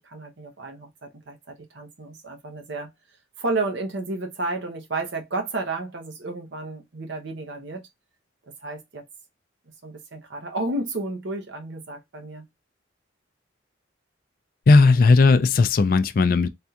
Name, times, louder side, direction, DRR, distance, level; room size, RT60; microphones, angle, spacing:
voice 1, 0.0-2.9 3.4-7.8 8.6-9.0 9.8-12.5, right 2 dB, 65° right, 0.8 m, -32 dB
voice 2, 14.7-16.5, left 3 dB, 45° left, 0.3 m, -16 dB
3.5 x 2.3 x 2.7 m
head